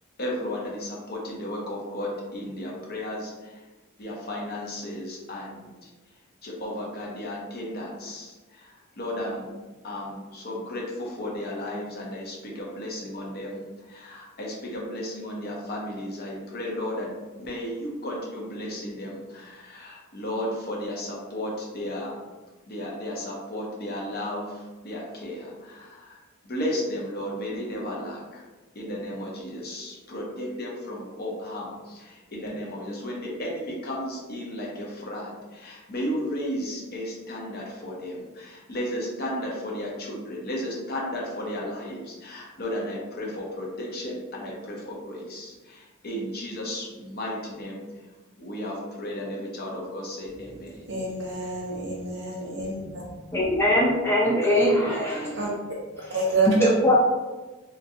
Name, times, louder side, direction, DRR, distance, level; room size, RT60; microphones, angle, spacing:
voice 1, 0.2-3.6 4.0-5.9 6.4-9.5 9.8-22.2 22.7-28.4 28.7-47.8 48.4-50.9, left 1 dB, 50° left, -3 dB, 0.7 m, -34 dB
voice 2, 50.9-53.0 55.4-55.5 56.1-56.5, right 3 dB, 60° right, -3 dB, 0.8 m, -28 dB
voice 3, 53.3-55.3 56.6-57.0, left 1 dB, 10° left, -5 dB, 0.3 m, -21 dB
2.9 x 2.6 x 2.6 m, 1.2 s
head